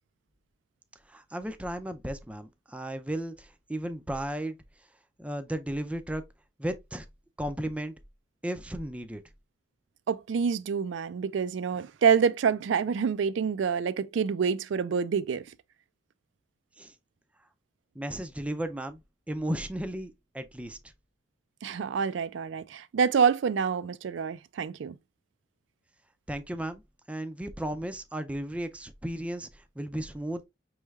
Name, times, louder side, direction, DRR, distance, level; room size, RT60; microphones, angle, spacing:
voice 1, 1.1-4.6 5.2-6.2 6.6-7.1 7.4-7.9 8.4-9.2 16.8-16.9 18.0-19.0 19.3-20.8 26.3-26.8 27.1-30.5, right 1 dB, 5° right, 0.4 m, -34 dB
voice 2, 10.1-15.4 21.6-25.0, right 6 dB, 80° right, 0.4 m, -27 dB
5.4 x 3.2 x 2.3 m
head